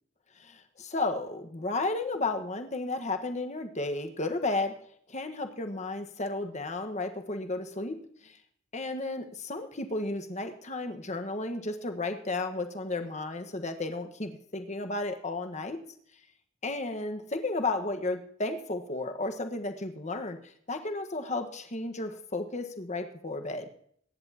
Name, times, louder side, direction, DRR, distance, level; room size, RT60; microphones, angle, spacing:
voice 1, 0.4-4.7 5.1-8.0 8.2-8.4 8.7-15.8 16.6-20.4 20.7-23.6, left 2 dB, 35° left, 6 dB, 1.4 m, -33 dB
22.5 x 10.5 x 2.9 m, 0.63 s
head